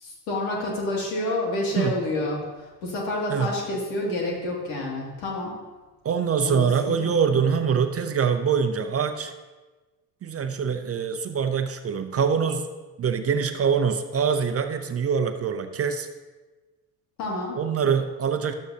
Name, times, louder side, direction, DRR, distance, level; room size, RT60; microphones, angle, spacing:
voice 1, 0.0-5.6 6.4-7.1 17.2-17.6, left 2 dB, 75° left, -2 dB, 2.6 m, -29 dB
voice 2, 6.0-9.3 10.2-12.7 13.0-16.1 17.5-18.5, right 6 dB, 30° right, 8 dB, 0.6 m, -24 dB
11.5 x 7.9 x 2.8 m, 1.2 s
hypercardioid pair, 70°, 49 cm